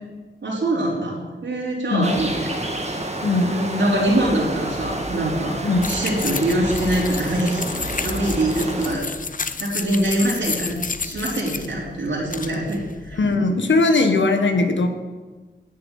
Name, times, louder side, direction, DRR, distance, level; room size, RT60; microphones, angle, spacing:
voice 1, 0.4-2.5 3.3-7.6 8.0-9.1 9.6-13.2, right 1 dB, 75° right, -5 dB, 3.5 m, -24 dB
sound 1, 2.0-8.9, right 1 dB, 35° right, 1.9 m, -29 dB
sound 2, 5.8-13.4, left 4 dB, 45° left, 0.7 m, -31 dB
voice 2, 13.2-14.9, left 3 dB, 75° left, 6 dB, 1.4 m, -19 dB
10.5 x 7.7 x 7.2 m, 1.3 s
cardioid pair, 55°, 19 cm